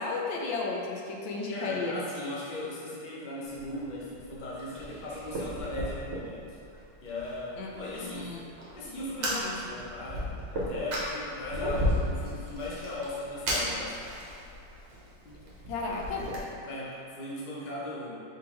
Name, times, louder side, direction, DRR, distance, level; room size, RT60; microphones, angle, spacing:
voice 1, 0.0-2.0 7.6-7.7 8.0-8.4 15.3-15.4 15.7-16.3, left 3 dB, 80° left, -1 dB, 1.3 m, -33 dB
voice 2, 1.5-6.6 7.0-8.3 8.7-14.1 16.6-18.2, left 2 dB, 55° left, -6 dB, 0.5 m, -38 dB
Fire, 3.4-16.4, equal, 50° right, 0.9 m, -35 dB
4.3 x 3.7 x 3.1 m, 2.4 s
omnidirectional pair, 2.1 m